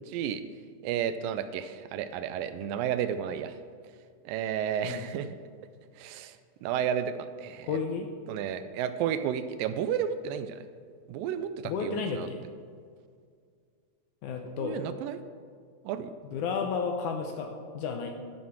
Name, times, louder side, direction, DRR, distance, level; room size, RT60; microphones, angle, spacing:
voice 1, 0.1-0.4 0.8-3.6 4.3-5.3 6.0-6.4 6.6-7.8 8.3-10.6 11.1-12.3 14.6-15.2 15.9-16.1, right 9 dB, 80° right, 11 dB, 2.2 m, -32 dB
voice 2, 7.7-8.1 11.6-12.4 14.2-14.8 16.3-18.2, left 5 dB, 75° left, 4 dB, 1.9 m, -32 dB
12.5 x 6.4 x 6.1 m, 2.1 s
omnidirectional pair, 4.1 m